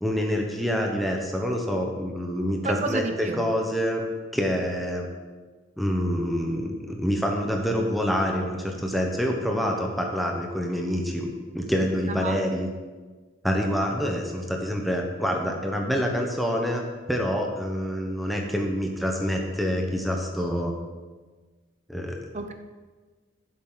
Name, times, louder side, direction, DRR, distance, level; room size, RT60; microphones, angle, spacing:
voice 1, 0.0-4.1 4.3-5.1 5.8-12.7 13.4-20.7 21.9-22.2, equal, ahead, 0 dB, 1.1 m, -26 dB
voice 2, 2.6-3.4 12.1-12.3 22.3-22.5, right 3 dB, 35° right, 6 dB, 0.9 m, -30 dB
15.5 x 7.5 x 4.0 m, 1.4 s
head